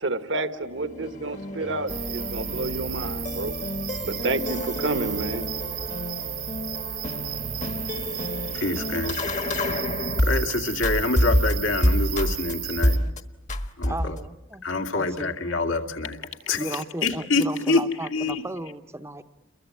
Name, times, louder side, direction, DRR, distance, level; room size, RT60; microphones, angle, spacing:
voice 1, 0.0-3.5 4.0-5.4, right 2 dB, 65° right, 9 dB, 1.4 m, -29 dB
sound 1, 0.8-10.5 10.8-12.5 12.8-13.2 13.5-14.3, left 1 dB, 35° left, 1.4 m, -28 dB
sound 2, 1.9-13.0, right 10 dB, 50° right, 1.3 m, -34 dB
voice 2, 8.5-9.2 10.2-13.0 13.8-14.2 14.6-18.4, left 3 dB, 75° left, 4 dB, 2.4 m, -26 dB
voice 3, 13.8-14.7 14.9-15.3 16.6-19.2, right 1 dB, 15° right, 10 dB, 0.9 m, -35 dB
30.0 x 22.5 x 8.6 m, 1.0 s
head